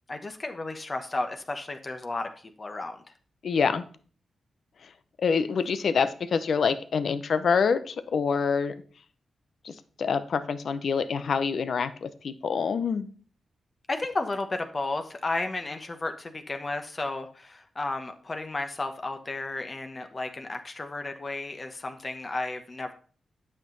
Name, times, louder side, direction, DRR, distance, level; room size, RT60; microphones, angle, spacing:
voice 1, 0.1-2.3 2.6-3.0 13.9-22.9, left 2 dB, 40° left, 6 dB, 1.1 m, -33 dB
voice 2, 3.4-3.8 5.2-8.7 9.6-13.1, left 5 dB, 70° left, 12 dB, 0.7 m, -26 dB
9.0 x 5.9 x 3.9 m, 0.42 s
cardioid pair, 50°, 0 cm